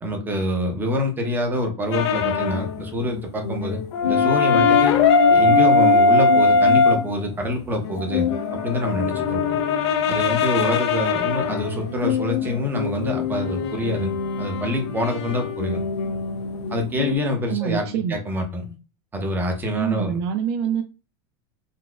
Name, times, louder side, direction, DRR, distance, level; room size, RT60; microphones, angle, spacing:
voice 1, 0.0-3.8 4.1-5.0 5.3-9.4 10.1-14.1 14.4-15.8 16.7-18.7 19.1-20.2, left 1 dB, 15° right, 3 dB, 0.8 m, -26 dB
sound 1, 1.9-2.7 3.0-3.1 3.4-7.0 7.8-17.1, left 4 dB, 90° left, 0.6 m, -21 dB
voice 2, 17.5-18.2 19.7-20.8, right 8 dB, 65° right, 6 dB, 0.4 m, -25 dB
4.0 x 2.3 x 2.4 m, 0.32 s
supercardioid pair, 145°, 14 cm